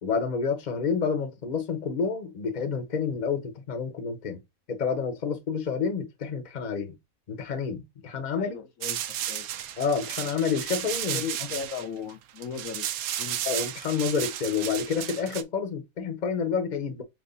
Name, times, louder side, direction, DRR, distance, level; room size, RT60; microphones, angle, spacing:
voice 1, 0.0-4.4 4.7-7.0 7.3-8.6 9.8-11.2 13.4-17.0, left 6 dB, 35° left, 0.9 m, -29 dB
voice 2, 8.4-9.0 9.3-9.5 11.1-12.9 13.2-13.4, left 7 dB, 70° left, 1.1 m, -36 dB
sound 1, 8.8-15.4, right 11 dB, 80° right, 1.0 m, -33 dB
3.5 x 3.1 x 3.9 m
omnidirectional pair, 1.5 m